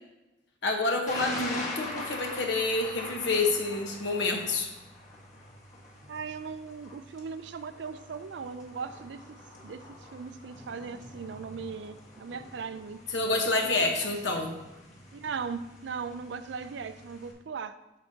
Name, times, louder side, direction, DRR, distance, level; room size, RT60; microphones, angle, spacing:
voice 1, 0.6-4.7 13.1-14.5, left 3 dB, 65° left, 3 dB, 1.1 m, -28 dB
Thunder, 1.1-17.3, left 2 dB, 40° left, 1.5 m, -43 dB
voice 2, 6.1-9.2 9.6-9.8 10.1-13.0 14.0-14.4 15.1-17.8, right 5 dB, 65° right, 12 dB, 0.4 m, -38 dB
8.7 x 7.0 x 2.8 m, 1.0 s
head